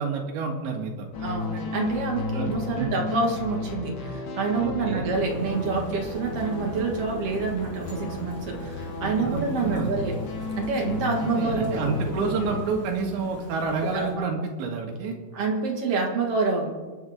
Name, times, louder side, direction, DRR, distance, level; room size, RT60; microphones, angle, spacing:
voice 1, 0.0-1.1 2.3-3.0 4.6-5.1 9.3-10.0 11.2-15.2, right 4 dB, 80° right, 2 dB, 4.2 m, -29 dB
sound 1, 1.1-12.6, left 3 dB, 60° left, 2.4 m, -34 dB
voice 2, 1.2-10.2 10.6-11.8 13.9-14.2 15.3-16.7, right 4 dB, 50° right, 0 dB, 2.0 m, -27 dB
Thunder / Rain, 5.1-14.1, right 1 dB, 25° right, 3.2 m, -40 dB
29.0 x 9.7 x 3.7 m, 1.4 s
omnidirectional pair, 5.2 m